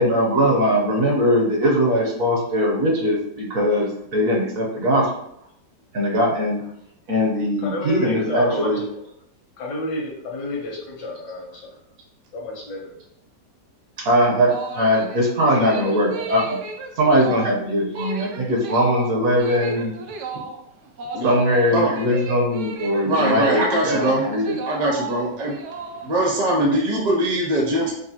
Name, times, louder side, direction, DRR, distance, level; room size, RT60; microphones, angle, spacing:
voice 1, 0.0-5.1 5.9-6.6 7.1-8.8 14.0-16.6 17.0-19.9 21.2-24.6, equal, 60° right, -2 dB, 1.1 m, -20 dB
voice 2, 7.6-9.0 9.6-11.7 12.3-12.9, left 1 dB, 80° left, -2 dB, 1.5 m, -31 dB
sound 1, 14.5-26.3, right 4 dB, 80° right, 0.6 m, -35 dB
voice 3, 23.0-24.3 24.7-25.6 26.0-27.9, right 1 dB, 40° right, -2 dB, 0.6 m, -21 dB
5.2 x 2.3 x 2.8 m, 0.74 s
omnidirectional pair, 1.8 m